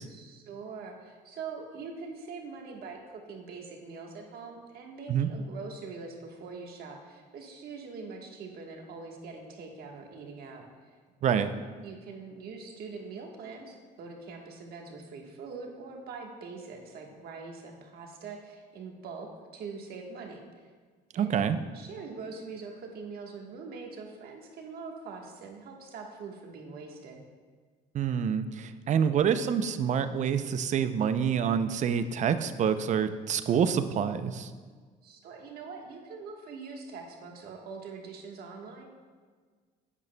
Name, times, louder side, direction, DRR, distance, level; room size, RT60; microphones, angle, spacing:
voice 1, 0.1-10.9 11.3-11.5 11.8-20.4 21.1-21.4 21.7-27.2 35.0-39.0, right 4 dB, 65° right, 2 dB, 1.3 m, -43 dB
voice 2, 21.1-21.6 27.9-34.5, right 7 dB, 45° right, 11 dB, 0.5 m, -27 dB
10.5 x 8.3 x 2.2 m, 1.5 s
cardioid pair, 110°, 17 cm